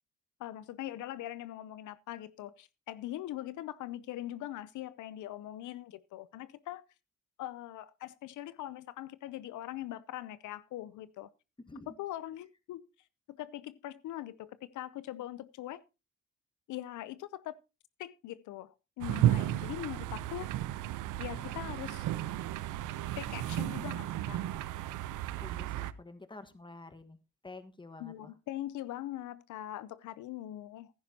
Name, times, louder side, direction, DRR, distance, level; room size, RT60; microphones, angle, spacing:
voice 1, 0.4-6.8 7.4-11.3 12.0-12.9 13.3-15.8 16.7-17.6 18.0-20.6 21.2-22.1 23.2-24.4 28.0-30.9, left 13 dB, 80° left, 0.6 m, -42 dB
sound 1, 19.0-25.9, right 13 dB, 85° right, 0.7 m, -33 dB
voice 2, 25.4-27.2 27.4-28.3, left 2 dB, 15° left, 1.4 m, -49 dB
15.0 x 11.0 x 2.8 m
cardioid pair, 90°, 30 cm